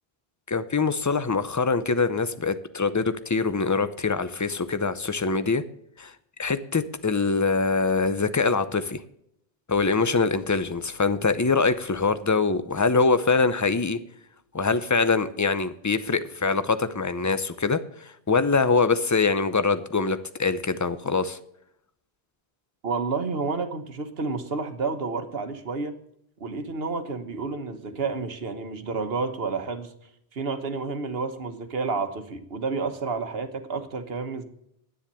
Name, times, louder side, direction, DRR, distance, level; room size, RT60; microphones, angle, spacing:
voice 1, 0.5-5.6 6.0-6.1 6.4-9.0 9.7-14.0 14.5-21.4, left 4 dB, 20° left, 13 dB, 0.6 m, -24 dB
voice 2, 22.8-26.0 26.4-29.9 30.3-34.4, right 4 dB, 65° right, 9 dB, 1.4 m, -30 dB
10.5 x 9.6 x 6.8 m, 0.75 s
omnidirectional pair, 1.1 m